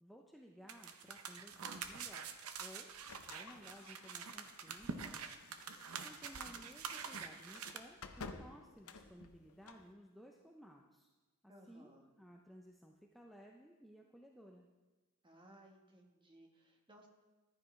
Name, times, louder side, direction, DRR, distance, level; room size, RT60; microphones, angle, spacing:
voice 1, 0.0-2.3 2.6-2.9 3.2-5.4 5.6-11.1 11.4-11.9 12.2-14.7, equal, ahead, 0 dB, 0.5 m, -58 dB
sound 1, 0.7-7.8, right 6 dB, 70° right, 0.7 m, -46 dB
sound 2, 3.0-9.9, left 4 dB, 70° left, 0.7 m, -55 dB
voice 2, 11.5-12.1 15.2-17.1, right 1 dB, 20° right, 2 dB, 1.2 m, -61 dB
14.0 x 10.0 x 3.2 m, 1.2 s
head